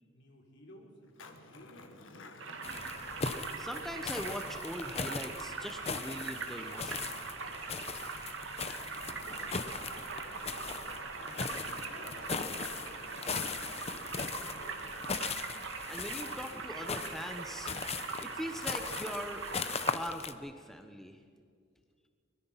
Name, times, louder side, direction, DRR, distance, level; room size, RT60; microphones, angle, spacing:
voice 1, 0.1-2.0 2.3-2.9 8.9-15.2, left 1 dB, 65° left, 1 dB, 4.1 m, -57 dB
Skateboard, 1.0-19.7, left 2 dB, 85° left, 1.6 m, -55 dB
sound 1, 2.4-20.0, right 4 dB, 75° right, 2.1 m, -41 dB
sound 2, 2.6-20.3, left 5 dB, 35° left, 0.8 m, -40 dB
voice 2, 3.6-7.1 15.9-17.7 18.2-19.4 19.9-21.2, equal, ahead, 6 dB, 0.9 m, -41 dB
24.0 x 21.0 x 5.7 m, 2.1 s
head